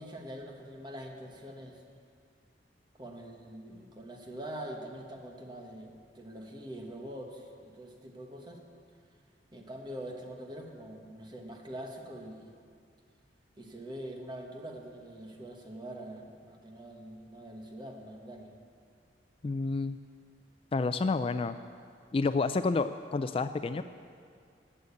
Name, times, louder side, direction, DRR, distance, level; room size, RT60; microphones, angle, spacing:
voice 1, 0.0-1.8 3.0-8.6 9.5-12.5 13.6-18.5, right 1 dB, 25° right, 1 dB, 1.5 m, -44 dB
voice 2, 19.4-20.0 20.7-21.6 22.1-23.8, left 3 dB, 30° left, 10 dB, 0.3 m, -29 dB
18.5 x 6.6 x 8.4 m, 2.2 s
head